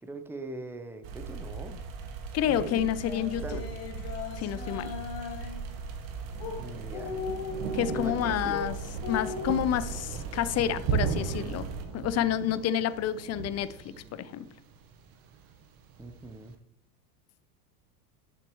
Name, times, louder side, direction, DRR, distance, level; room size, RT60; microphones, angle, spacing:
voice 1, 0.0-1.8 3.4-3.6 6.6-7.2 7.9-8.6 16.0-16.5, right 2 dB, 5° right, 0.9 m, -41 dB
sound 1, 1.0-11.8, right 5 dB, 65° right, 1.9 m, -39 dB
voice 2, 2.3-3.6 4.3-4.9 7.7-8.8 9.1-14.5, left 10 dB, 35° left, 0.7 m, -29 dB
sound 2, 2.4-5.6 6.4-6.6 6.9-8.7 9.0-9.5, left 4 dB, 60° left, 2.8 m, -38 dB
Thunder, 4.6-16.5, right 6 dB, 45° right, 1.5 m, -38 dB
11.5 x 6.7 x 3.2 m
hypercardioid pair, 100°, 46 cm